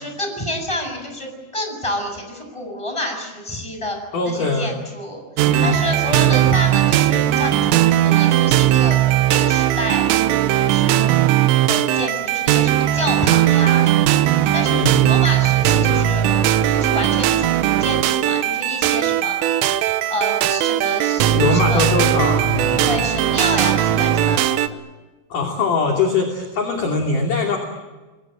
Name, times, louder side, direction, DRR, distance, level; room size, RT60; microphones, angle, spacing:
voice 1, 0.0-4.0 4.2-5.2 5.6-9.0 9.3-10.1 10.5-11.1 11.7-16.2 16.7-19.4 20.1-21.9 22.8-24.6, left 1 dB, 5° left, 3 dB, 6.9 m, -28 dB
voice 2, 4.1-4.8 5.4-5.9 14.7-15.0 21.4-23.0 25.3-27.6, left 3 dB, 45° left, 2 dB, 3.9 m, -22 dB
sound 1, 5.4-24.7, right 12 dB, 80° right, 3.5 m, -18 dB
29.0 x 22.0 x 8.7 m, 1.2 s
omnidirectional pair, 5.9 m